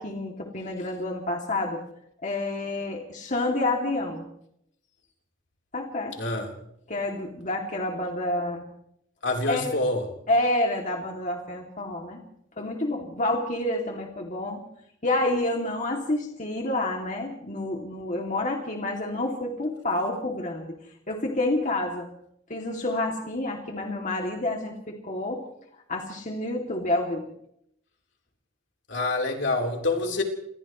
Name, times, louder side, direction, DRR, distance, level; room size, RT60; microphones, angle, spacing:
voice 1, 0.0-1.8 2.2-4.2 5.7-6.2 6.9-8.6 9.5-9.7 10.3-12.2 12.6-14.6 15.0-20.7 21.1-22.1 22.5-25.4 25.9-27.3, left 1 dB, 40° left, 1 dB, 2.7 m, -28 dB
voice 2, 6.2-6.5 9.2-10.1 28.9-30.2, left 2 dB, 65° left, 1 dB, 3.9 m, -26 dB
30.0 x 27.0 x 3.2 m, 0.74 s
head